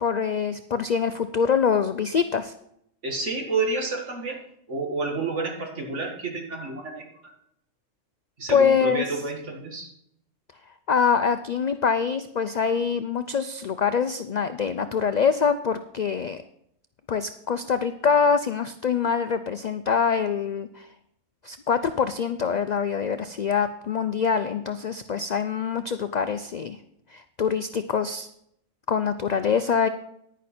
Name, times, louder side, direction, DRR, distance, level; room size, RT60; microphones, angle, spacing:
voice 1, 0.0-2.5 8.5-9.0 10.9-16.4 17.1-20.9 21.4-26.8 27.1-28.3 28.9-29.9, left 6 dB, 75° left, 10 dB, 0.4 m, -24 dB
voice 2, 3.0-4.4 4.7-7.3 8.4-9.9, right 3 dB, 65° right, 2 dB, 2.1 m, -30 dB
10.0 x 10.0 x 4.3 m, 0.74 s
omnidirectional pair, 1.3 m